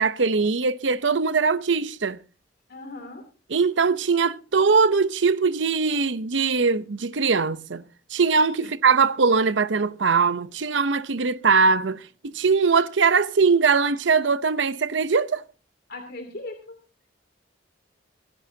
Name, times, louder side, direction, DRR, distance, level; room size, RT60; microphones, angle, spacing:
voice 1, 0.0-2.2 3.5-7.8 8.1-15.4, right 5 dB, 85° right, 0.8 m, -21 dB
voice 2, 2.7-3.2 8.6-8.7 15.9-16.7, left 2 dB, 60° left, 2.7 m, -38 dB
26.0 x 11.0 x 2.8 m
head